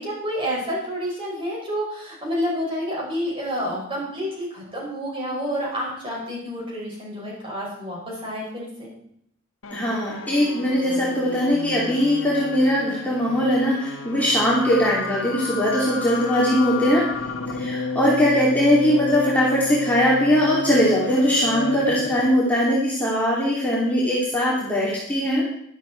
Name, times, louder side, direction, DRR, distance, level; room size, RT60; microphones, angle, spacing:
voice 1, 0.0-8.9 17.6-17.8, equal, 25° right, -4 dB, 6.1 m, -29 dB
sound 1, 9.6-22.3, left 2 dB, 85° left, 1.3 m, -31 dB
voice 2, 9.7-17.0 17.5-25.4, equal, 10° left, -6 dB, 2.6 m, -20 dB
12.5 x 11.5 x 4.5 m, 0.70 s
head